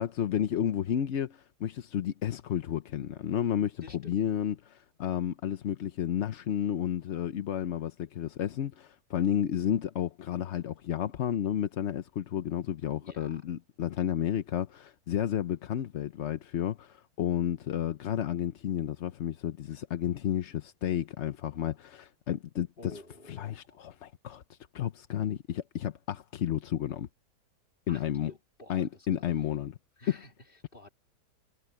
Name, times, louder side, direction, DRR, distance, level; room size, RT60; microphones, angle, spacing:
voice 1, 0.0-23.0 23.3-27.1 27.9-28.3 28.7-29.7, left 10 dB, 55° left, 0.8 m, -32 dB
voice 2, 3.8-4.2 13.0-13.4 22.8-23.8 27.9-29.2 30.0-30.9, left 2 dB, 35° left, 3.0 m, -51 dB
omnidirectional pair, 1.7 m